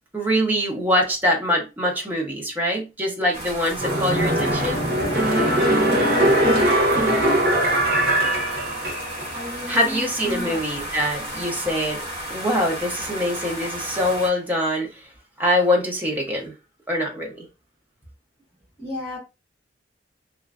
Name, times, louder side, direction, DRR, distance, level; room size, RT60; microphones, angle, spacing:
voice 1, 0.1-4.8 9.7-12.0 12.3-15.0 15.4-16.5 16.9-17.5, equal, 10° right, 0.7 m, -23 dB
sound 1, 3.3-14.3, equal, 30° right, 1.3 m, -34 dB
sound 2, 3.8-9.3 9.7-9.8, right 1 dB, 60° right, 0.8 m, -20 dB
voice 2, 5.9-6.4 9.3-11.0 18.8-19.2, left 1 dB, 15° left, 1.3 m, -34 dB
3.0 x 2.3 x 2.4 m
head